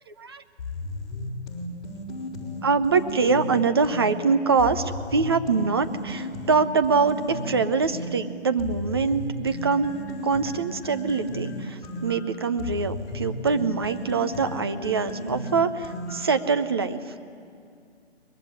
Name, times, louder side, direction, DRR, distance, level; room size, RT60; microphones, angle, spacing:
sound 1, 0.6-4.1 4.6-8.1 8.6-16.4, left 1 dB, 35° left, 5.1 m, -35 dB
voice 1, 2.6-9.9 10.2-17.0, right 5 dB, 20° right, 9 dB, 0.6 m, -24 dB
23.5 x 21.5 x 9.9 m, 2.3 s
hypercardioid pair, 155°, 35 cm